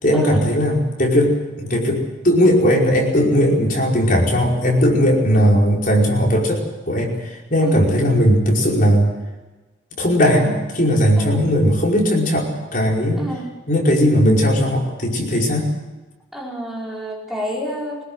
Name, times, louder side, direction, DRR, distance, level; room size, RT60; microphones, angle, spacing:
voice 1, 0.0-9.1 10.0-13.3 13.7-15.7, equal, 40° left, -1 dB, 5.1 m, -17 dB
voice 2, 13.2-13.5 16.3-18.0, equal, ahead, -3 dB, 5.0 m, -29 dB
24.5 x 20.5 x 8.0 m, 1.2 s
head